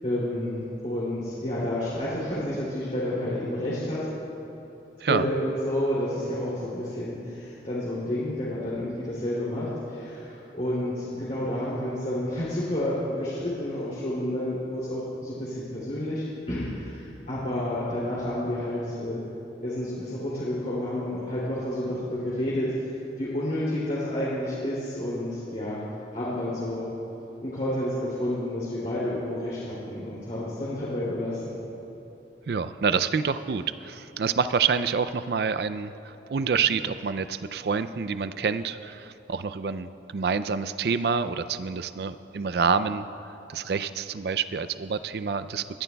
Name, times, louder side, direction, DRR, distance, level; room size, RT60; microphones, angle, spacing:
voice 1, 0.0-4.1 5.1-19.2 19.6-25.8 26.1-26.9 27.4-31.6, left 1 dB, 45° left, -9 dB, 2.8 m, -30 dB
voice 2, 32.5-43.1 43.5-45.8, right 5 dB, 60° right, 12 dB, 0.4 m, -27 dB
22.5 x 13.0 x 2.3 m, 3.0 s
head